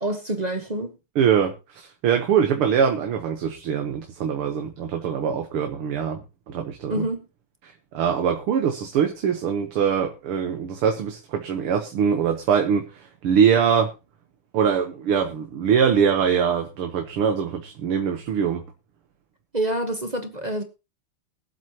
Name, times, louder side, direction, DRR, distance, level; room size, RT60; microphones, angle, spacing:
voice 1, 0.0-1.0 6.9-7.3 19.5-20.6, right 1 dB, 25° right, 1.0 m, -27 dB
voice 2, 1.2-6.2 6.5-7.1 7.9-13.9 14.5-18.6, right 7 dB, 85° right, 2.1 m, -23 dB
22.5 x 7.7 x 3.0 m
omnidirectional pair, 2.3 m